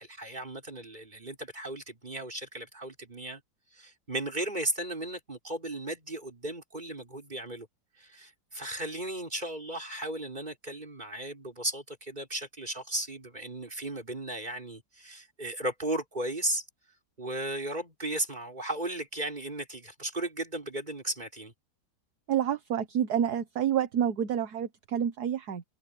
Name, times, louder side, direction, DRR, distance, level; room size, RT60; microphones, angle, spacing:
voice 1, 0.0-3.4 3.7-7.7 8.0-16.7 17.2-21.5, right 1 dB, 25° right, 5.7 m, -35 dB
voice 2, 22.3-25.6, right 9 dB, 60° right, 1.6 m, -28 dB
omnidirectional pair, 2.0 m